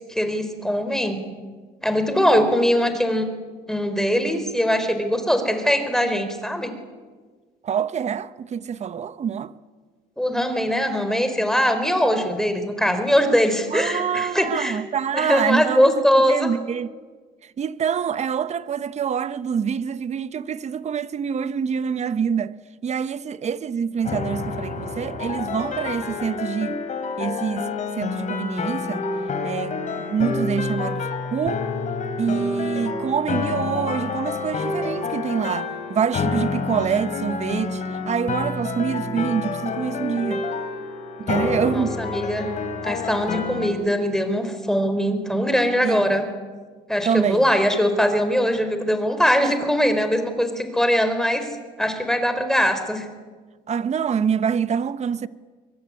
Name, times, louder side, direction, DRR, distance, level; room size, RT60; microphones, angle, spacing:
voice 1, 0.1-1.2 1.8-3.3 3.7-6.7 10.2-14.8 15.1-16.5 41.7-42.5 42.8-46.2 46.9-51.5 51.8-53.1, equal, 5° left, 4.1 m, -21 dB
voice 2, 7.6-9.5 13.7-17.0 17.4-22.5 22.8-26.8 27.2-27.7 28.0-29.0 29.4-31.7 32.2-40.4 41.2-42.0 45.8-46.1 47.0-47.5 49.4-49.5 53.7-55.3, right 7 dB, 40° right, 1.1 m, -26 dB
sound 1, 24.0-43.7, left 4 dB, 45° left, 4.8 m, -28 dB
23.5 x 22.5 x 9.8 m
cardioid pair, 110°, 17 cm